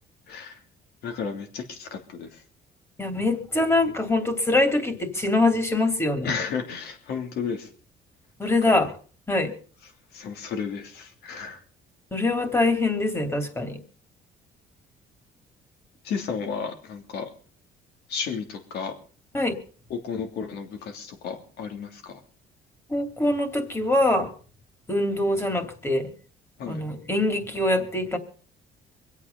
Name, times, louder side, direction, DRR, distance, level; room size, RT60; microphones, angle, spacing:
voice 1, 0.3-0.6 1.0-2.4 6.2-7.7 8.4-8.5 10.1-11.6 16.0-17.3 18.1-18.9 19.9-22.2 26.6-26.8, left 6 dB, 75° left, 5 dB, 3.1 m, -33 dB
voice 2, 3.0-6.3 8.4-8.9 9.3-9.5 12.1-13.8 19.3-19.5 22.9-24.3 24.9-26.1 26.7-28.2, left 2 dB, 15° left, 8 dB, 2.9 m, -23 dB
24.5 x 8.4 x 5.4 m, 0.42 s
cardioid pair, 110°, 17 cm